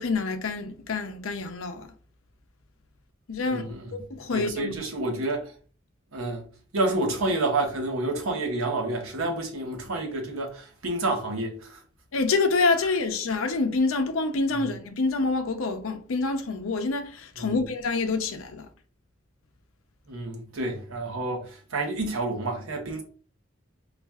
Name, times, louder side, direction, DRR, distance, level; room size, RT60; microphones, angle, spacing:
voice 1, 0.0-1.9 3.3-3.6 3.9-4.8 12.1-18.7, left 3 dB, 85° left, 0.6 m, -27 dB
voice 2, 3.5-3.9 4.3-5.5 6.1-6.4 6.7-11.8 14.5-14.7 17.4-17.6 20.1-23.0, right 2 dB, 90° right, 0.9 m, -29 dB
4.3 x 2.4 x 2.3 m
head